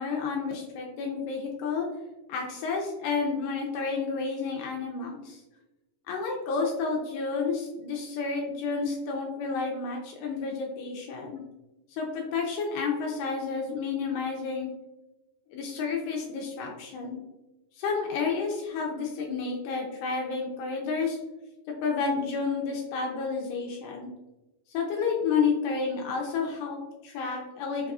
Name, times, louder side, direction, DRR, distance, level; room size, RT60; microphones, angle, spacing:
voice 1, 0.0-1.9 2.3-5.4 6.1-11.4 11.9-14.7 15.5-17.2 17.8-21.2 21.8-24.1 24.7-27.9, left 5 dB, 85° left, 0 dB, 2.1 m, -30 dB
5.2 x 2.4 x 2.3 m, 1.0 s
omnidirectional pair, 3.8 m